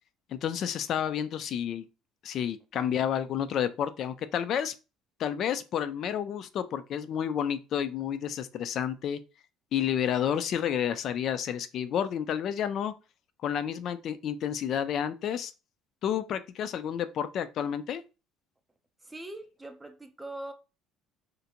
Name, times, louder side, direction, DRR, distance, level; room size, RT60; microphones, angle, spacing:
voice 1, 0.3-1.9 2.2-4.7 5.2-9.2 9.7-12.9 13.4-15.5 16.0-18.0, left 9 dB, 55° left, 0.3 m, -30 dB
voice 2, 19.0-20.5, right 1 dB, 10° right, 0.4 m, -42 dB
2.5 x 2.1 x 2.7 m
cardioid pair, 115°, 0 cm